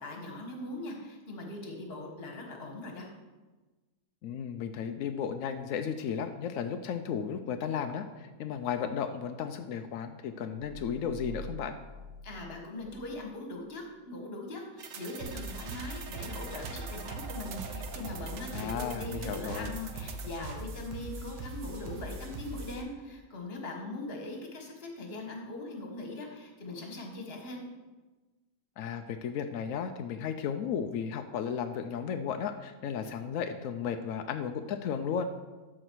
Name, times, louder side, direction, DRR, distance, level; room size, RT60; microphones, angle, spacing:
voice 1, 0.0-3.1 12.2-27.6, left 2 dB, 35° left, 1 dB, 1.5 m, -41 dB
voice 2, 4.2-11.8 18.5-19.7 28.8-35.2, left 7 dB, 80° left, 7 dB, 0.7 m, -34 dB
sound 1, 10.6-13.3, equal, 35° right, 2.2 m, -46 dB
sound 2, 14.8-20.3, right 6 dB, 60° right, 0.8 m, -44 dB
sound 3, 15.2-22.8, right 2 dB, 90° right, 1.7 m, -41 dB
13.0 x 5.0 x 4.6 m, 1.2 s
omnidirectional pair, 1.9 m